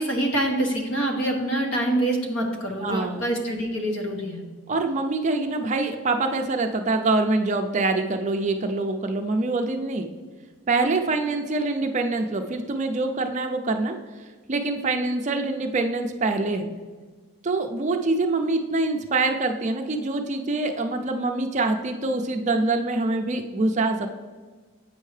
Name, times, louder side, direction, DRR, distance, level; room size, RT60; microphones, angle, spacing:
voice 1, 0.0-4.4, right 1 dB, 60° left, 1 dB, 1.1 m, -25 dB
voice 2, 2.8-3.2 4.7-10.1 10.7-16.7 17.4-24.1, right 3 dB, 35° right, 5 dB, 0.4 m, -25 dB
8.3 x 5.4 x 3.2 m, 1.4 s
head